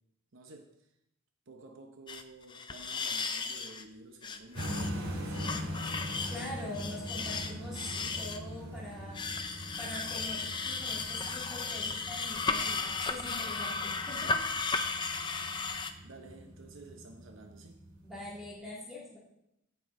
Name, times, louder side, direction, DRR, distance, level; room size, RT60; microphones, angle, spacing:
voice 1, 0.3-0.9 1.5-5.8 16.0-17.8, right 2 dB, 60° right, 4 dB, 0.8 m, -52 dB
sound 1, 2.1-2.2 2.5-3.8 4.2-4.9 5.3-8.4 9.1-15.9, left 4 dB, 20° left, 0.5 m, -35 dB
sound 2, 4.5-18.5, equal, 80° right, 2.4 m, -42 dB
voice 2, 6.3-9.5 9.8-14.7 15.0-15.2 18.0-19.2, left 1 dB, ahead, -7 dB, 2.1 m, -44 dB
16.0 x 5.9 x 3.7 m, 0.83 s
head